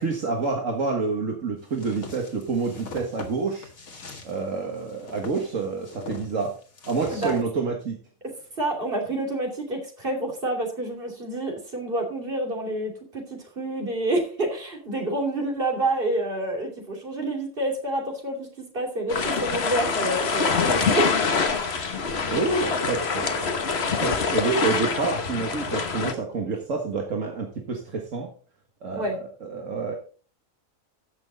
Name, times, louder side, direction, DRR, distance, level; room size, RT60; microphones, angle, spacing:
voice 1, 0.0-3.7 4.2-6.6 6.9-8.0 22.2-28.3 28.8-29.9, right 4 dB, 65° right, 1 dB, 1.9 m, -28 dB
sound 1, 1.7-7.4, left 3 dB, 90° left, 2.3 m, -42 dB
voice 2, 7.1-7.5 8.6-18.5 18.7-21.2 28.9-29.2, right 1 dB, 40° right, 1 dB, 3.1 m, -28 dB
sound 2, 19.1-26.1, left 5 dB, 50° left, 1.3 m, -25 dB
15.0 x 6.2 x 3.9 m, 0.40 s
omnidirectional pair, 1.4 m